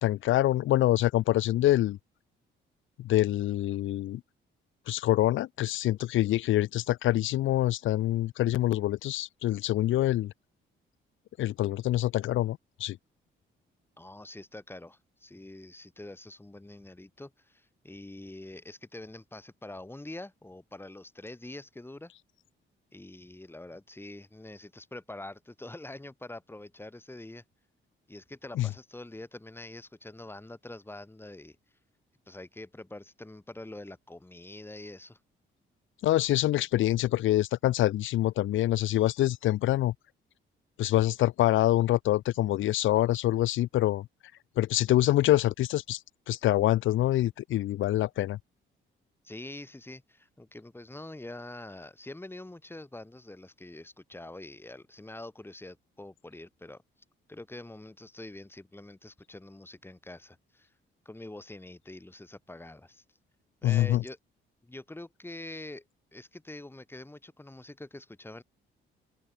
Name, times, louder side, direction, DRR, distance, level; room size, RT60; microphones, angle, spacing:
voice 1, 0.0-2.0 3.0-4.2 4.9-10.3 11.4-13.0 28.6-28.7 36.0-39.9 40.8-44.1 44.6-46.0 46.3-48.4 63.6-64.0, left 14 dB, 70° left, 0.7 m, -25 dB
voice 2, 14.0-22.1 22.9-27.4 28.1-31.6 32.3-35.2 49.2-56.8 57.3-60.7 61.0-63.0 63.6-64.2 64.6-65.8 66.1-68.4, left 2 dB, 10° left, 4.8 m, -45 dB
open air
cardioid pair, 90°, 21 cm